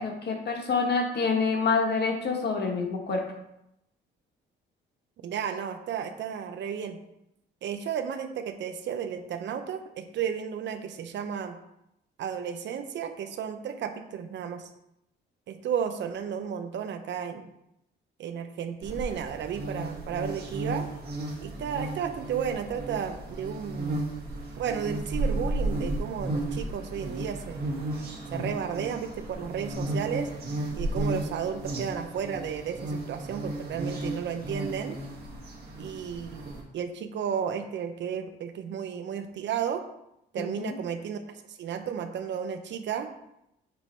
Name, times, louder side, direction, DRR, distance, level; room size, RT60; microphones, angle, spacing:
voice 1, 0.0-3.3 40.4-40.8, left 4 dB, 55° left, 2 dB, 1.3 m, -27 dB
voice 2, 5.2-7.0 7.6-11.6 12.2-14.6 15.5-17.5 18.2-20.9 21.4-24.0 24.6-27.6 28.3-30.3 30.8-35.0 35.8-36.4 36.7-39.8 40.3-41.2 41.6-43.1, right 8 dB, 65° right, 8 dB, 0.7 m, -33 dB
sound 1, 18.8-36.6, right 1 dB, 50° right, 1.8 m, -34 dB
8.4 x 3.1 x 4.3 m, 0.83 s
cardioid pair, 90°, 20 cm